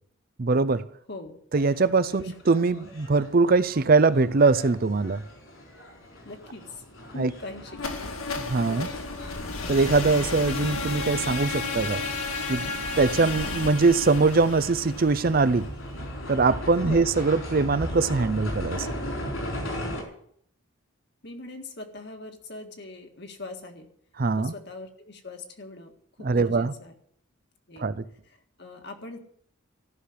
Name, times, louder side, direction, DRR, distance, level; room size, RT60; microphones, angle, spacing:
voice 1, 0.4-0.9 1.5-5.2 7.2-7.3 8.4-8.9 9.7-12.1 12.5-15.7 16.3-18.9 24.2-24.5 26.2-26.7 27.8-28.0, right 3 dB, 45° right, 0.5 m, -22 dB
sound 1, 1.5-20.0, equal, 70° left, 4.4 m, -38 dB
voice 2, 6.2-8.1 8.7-8.9 16.8-17.0 21.2-23.9 24.4-25.9 26.2-26.9 27.7-27.9 28.2-29.2, left 2 dB, 50° left, 1.9 m, -41 dB
sound 2, 7.7-15.7, left 3 dB, 85° left, 1.9 m, -32 dB
14.5 x 6.5 x 9.7 m
head